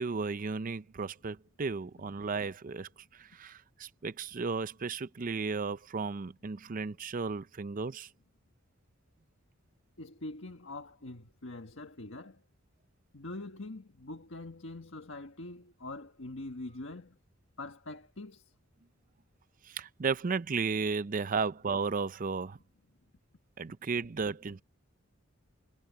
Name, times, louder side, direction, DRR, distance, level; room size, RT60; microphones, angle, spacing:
voice 1, 0.0-8.1 19.6-22.6 23.6-24.6, right 4 dB, 40° right, 0.5 m, -34 dB
voice 2, 10.0-12.4 13.1-17.2 17.6-18.5, left 2 dB, 65° left, 1.6 m, -44 dB
head